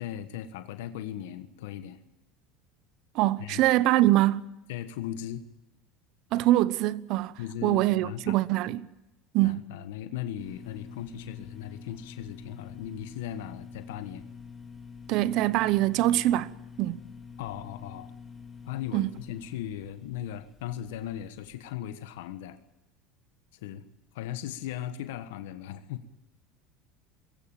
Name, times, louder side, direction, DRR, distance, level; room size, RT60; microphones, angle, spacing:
voice 1, 0.0-2.0 3.4-3.6 4.7-5.4 7.4-8.4 9.4-14.2 17.4-18.1 18.6-22.6 23.5-23.8 24.1-26.0, left 11 dB, 80° left, 1.3 m, -38 dB
voice 2, 3.1-4.5 6.3-8.9 9.3-9.6 15.1-17.0 18.9-19.1, right 15 dB, 60° right, 0.9 m, -24 dB
sound 1, 10.4-21.6, left 5 dB, 5° left, 4.5 m, -47 dB
21.5 x 16.0 x 8.9 m
supercardioid pair, 105°, 0 cm